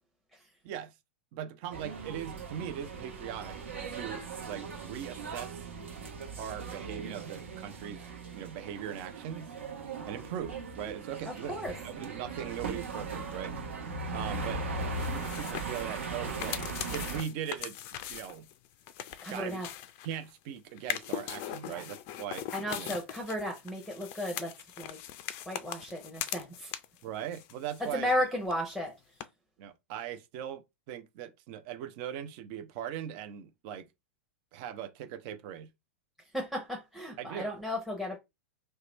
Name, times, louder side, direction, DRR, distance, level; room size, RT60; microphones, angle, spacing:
voice 1, 0.6-0.9 1.3-3.6 3.9-5.6 6.4-9.5 10.1-11.6 11.8-13.5 14.1-14.6 15.0-16.6 16.9-18.5 19.3-19.6 20.0-22.5 22.7-22.9 27.0-28.1 29.6-33.9 34.5-35.7 37.2-37.5, right 9 dB, 45° right, 0.5 m, -40 dB
sound 1, 1.7-17.2, right 4 dB, 70° right, 0.9 m, -39 dB
sound 2, 14.8-20.3 20.8-27.0 27.3-28.2 28.4-28.5 29.2-29.3, left 12 dB, 40° left, 0.4 m, -41 dB
voice 2, 19.2-19.7 21.7-21.8 22.5-25.0 25.5-26.7 27.8-28.9 36.3-38.2, left 1 dB, ahead, 0.8 m, -34 dB
2.9 x 2.2 x 3.0 m
figure-of-eight pair, 100°, 7 cm